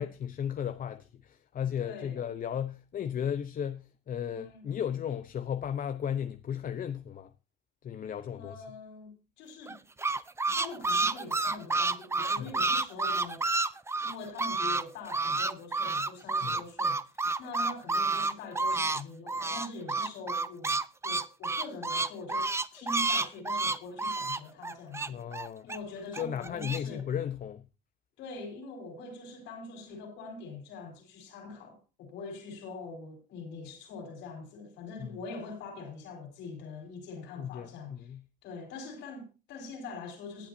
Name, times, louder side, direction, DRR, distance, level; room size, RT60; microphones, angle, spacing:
voice 1, 0.0-7.3 7.8-8.6 12.4-12.5 16.4-16.6 25.1-25.7 26.2-27.6 35.0-35.1 37.4-38.2, left 9 dB, 50° left, 0.9 m, -35 dB
voice 2, 1.8-2.2 4.3-4.7 8.3-9.8 10.5-13.4 14.0-17.0 17.4-25.2 25.6-27.0 28.2-38.1 38.4-40.5, left 3 dB, 85° left, 4.9 m, -43 dB
sound 1, 9.7-14.8 15.1-19.0 19.3-25.8 26.1-26.8, right 3 dB, 15° right, 0.7 m, -29 dB
18.5 x 8.9 x 2.8 m
cardioid pair, 95°, 18 cm